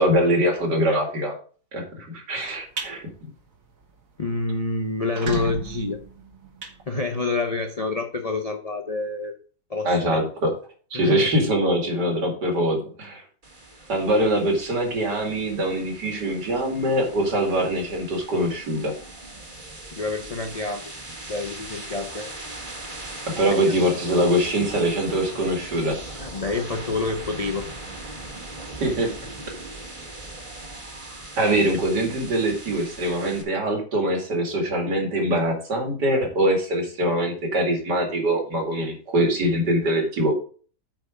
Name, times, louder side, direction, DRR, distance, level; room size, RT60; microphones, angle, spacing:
voice 1, 0.0-1.3 1.7-3.3 9.8-10.5 10.9-13.2 13.9-18.9 23.4-26.2 28.8-29.1 31.4-40.3, right 1 dB, 70° right, 1 dB, 2.9 m, -23 dB
sound 1, 2.5-2.9 3.4-3.6 4.0-4.1 4.3-4.4 4.9-7.5, right 5 dB, 50° right, 1.7 m, -34 dB
voice 2, 4.2-6.0 6.9-9.3 9.7-10.2 10.9-11.3 19.9-20.9 21.3-22.3 23.5-23.7 26.2-27.7, left 3 dB, 40° left, 5 dB, 0.5 m, -27 dB
sound 2, 13.4-33.4, right 2 dB, 30° right, 1.9 m, -39 dB
8.8 x 5.3 x 4.9 m, 0.42 s
omnidirectional pair, 1.9 m